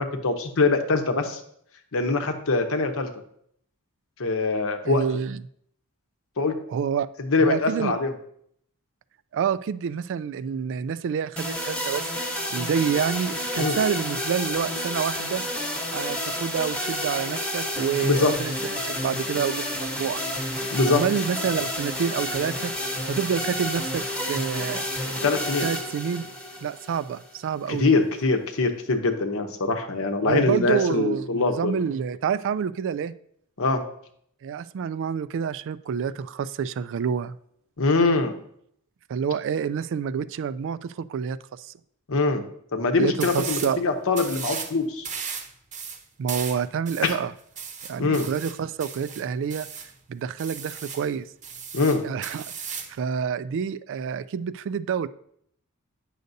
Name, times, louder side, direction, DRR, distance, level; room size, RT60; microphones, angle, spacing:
voice 1, 0.0-1.4 1.9-3.1 4.2-5.0 6.4-6.6 7.2-8.1 13.6-13.8 18.0-18.3 20.7-21.0 25.2-25.7 27.7-31.7 33.6-33.8 37.8-38.4 42.1-42.4 42.7-45.1 47.0-47.1 48.0-48.3 51.7-52.0, left 3 dB, 65° left, 6 dB, 0.9 m, -23 dB
voice 2, 4.8-5.4 6.7-7.1 7.4-7.9 9.3-12.1 12.5-15.4 15.9-20.2 20.9-22.7 23.1-25.3 25.6-26.3 26.6-27.9 30.3-33.1 34.4-37.4 39.1-41.7 43.0-43.8 46.2-47.3 47.9-49.7 50.1-51.3 52.0-55.1, right 7 dB, 60° right, 15 dB, 0.3 m, -28 dB
sound 1, 11.4-27.4, left 1 dB, 5° left, 1.0 m, -30 dB
sound 2, 43.2-43.8 44.1-44.7 45.0-49.9 50.4-51.1 51.4-53.0, right 6 dB, 35° right, 0.8 m, -36 dB
9.1 x 6.5 x 2.7 m, 0.68 s
head